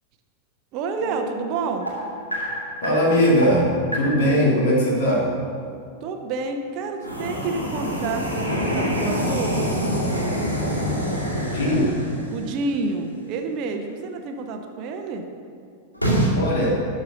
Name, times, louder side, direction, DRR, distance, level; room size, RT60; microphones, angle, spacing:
voice 1, 0.7-1.9 6.0-10.6 12.3-15.3, right 4 dB, 40° right, 5 dB, 0.9 m, -29 dB
sound 1, 1.0-5.7 7.0-12.5 15.9-16.3, equal, 85° left, 2.2 m, -27 dB
voice 2, 2.8-3.7 3.9-5.3 11.3-11.9 16.3-16.8, equal, 55° left, -3 dB, 2.9 m, -20 dB
12.0 x 5.4 x 6.4 m, 2.3 s
figure-of-eight pair, 90°, 0 cm